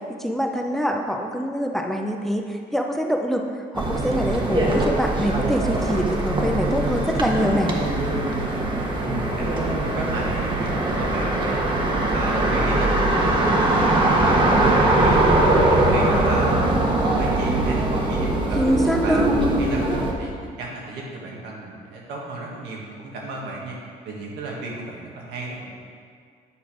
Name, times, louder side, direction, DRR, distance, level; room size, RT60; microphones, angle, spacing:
voice 1, 0.1-3.5 3.7-7.8 18.6-19.3, equal, ahead, 2 dB, 0.6 m, -24 dB
sound 1, 3.7-20.1, right 2 dB, 30° right, 1.1 m, -21 dB
voice 2, 9.0-11.7 12.1-15.4 15.7-18.6 19.0-23.8 24.1-25.7, right 2 dB, 85° right, -3 dB, 1.8 m, -34 dB
9.3 x 4.4 x 4.9 m, 2.1 s
cardioid pair, 110°, 17 cm